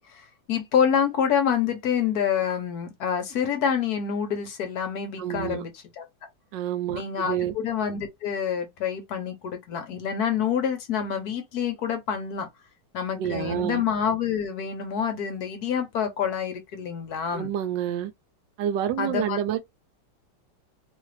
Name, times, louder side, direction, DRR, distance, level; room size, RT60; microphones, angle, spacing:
voice 1, 0.1-6.0 6.9-12.5 12.9-17.5 19.0-19.4, left 7 dB, 65° left, 1.1 m, -27 dB
voice 2, 5.2-5.6 6.5-7.5 13.2-13.8 17.3-18.1 18.6-19.6, right 10 dB, 80° right, 1.2 m, -28 dB
3.1 x 2.4 x 3.2 m
omnidirectional pair, 2.0 m